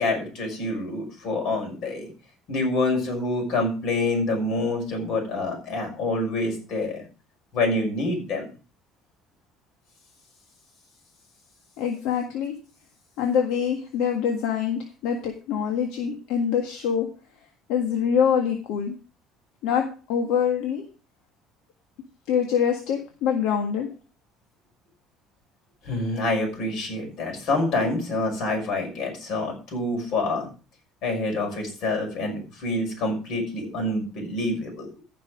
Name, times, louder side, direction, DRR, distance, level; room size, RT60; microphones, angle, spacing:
voice 1, 0.0-2.1 2.5-7.1 7.5-8.5 25.8-30.5 31.0-34.9, left 2 dB, 60° left, 2 dB, 5.8 m, -27 dB
voice 2, 11.8-12.5 13.2-17.0 17.7-18.9 19.6-19.8 20.1-20.8 22.3-23.9, left 7 dB, 80° left, 3 dB, 1.7 m, -24 dB
15.0 x 6.0 x 5.0 m, 0.36 s
cardioid pair, 140°, 0 cm